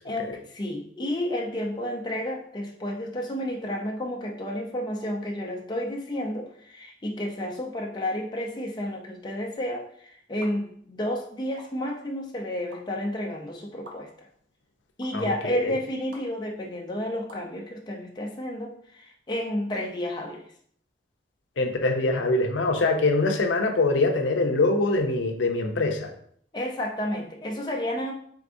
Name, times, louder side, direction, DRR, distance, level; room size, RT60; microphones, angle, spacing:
voice 1, 0.0-14.3 15.0-20.5 26.5-28.1, left 1 dB, 25° left, 0 dB, 0.5 m, -31 dB
sound 1, 10.4-10.5 11.6-11.7 12.7-12.8 13.8-13.9 15.0-15.1 16.1-16.2 17.3-17.5, right 1 dB, 85° right, 0.9 m, -44 dB
voice 2, 15.1-15.7 21.6-26.1, left 2 dB, 80° left, 4 dB, 0.6 m, -24 dB
4.7 x 3.4 x 2.6 m, 0.62 s
head